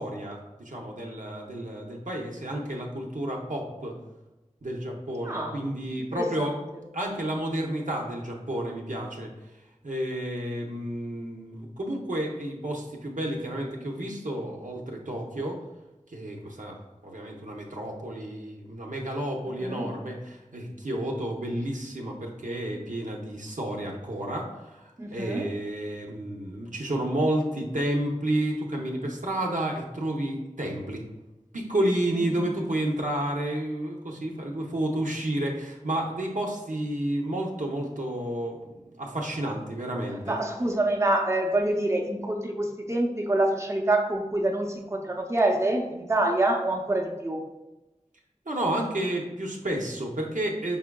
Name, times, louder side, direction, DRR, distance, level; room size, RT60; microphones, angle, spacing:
voice 1, 0.0-4.0 4.6-6.5 6.9-9.3 9.8-15.6 16.1-16.8 17.0-31.0 31.5-38.6 39.0-40.4 48.5-50.8, right 1 dB, 90° right, 0 dB, 0.7 m, -31 dB
voice 2, 5.2-5.6 6.1-6.6 19.6-19.9 25.0-25.5 40.2-47.5, right 1 dB, 20° right, 1 dB, 0.6 m, -26 dB
5.5 x 3.5 x 2.2 m, 1.0 s
wide cardioid pair, 40°, 13 cm